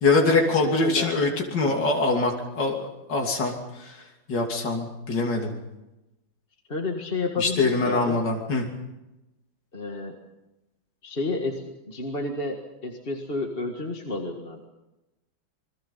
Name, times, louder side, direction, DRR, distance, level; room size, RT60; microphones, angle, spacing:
voice 1, 0.0-4.0 4.3-5.5 7.4-8.6, left 3 dB, 55° left, 0 dB, 3.5 m, -24 dB
voice 2, 0.6-1.1 1.6-1.9 6.7-8.2 9.7-10.2 11.0-14.7, left 2 dB, 30° left, 2 dB, 1.9 m, -31 dB
28.0 x 22.0 x 5.6 m, 0.99 s
omnidirectional pair, 2.2 m